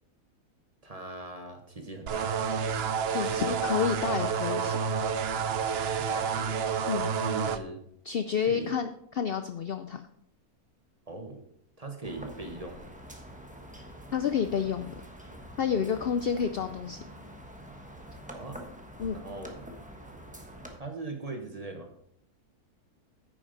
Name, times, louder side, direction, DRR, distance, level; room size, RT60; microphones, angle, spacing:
voice 1, 0.8-2.4 5.9-6.6 7.2-7.8 8.4-8.7 11.1-11.4 11.8-12.9 18.3-18.6 19.1-19.7 20.8-21.9, right 2 dB, 25° right, 4 dB, 1.2 m, -40 dB
sound 1, 2.1-7.6, right 6 dB, 60° right, 0.7 m, -29 dB
voice 2, 3.1-4.8 6.9-7.1 8.1-10.0 14.1-14.9 15.6-17.0 19.0-19.2, left 7 dB, 75° left, 9 dB, 0.5 m, -29 dB
sound 2, 12.0-20.8, equal, 5° right, 1.0 m, -46 dB
9.9 x 8.6 x 4.0 m, 0.71 s
omnidirectional pair, 1.6 m